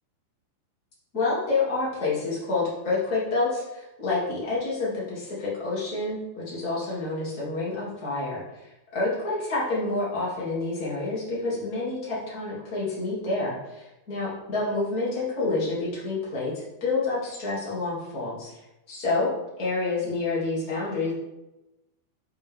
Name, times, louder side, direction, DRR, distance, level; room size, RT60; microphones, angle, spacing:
voice 1, 1.1-18.5 18.9-21.1, left 3 dB, 30° left, -7 dB, 1.9 m, -28 dB
8.0 x 5.5 x 3.6 m, 0.95 s
omnidirectional pair, 5.6 m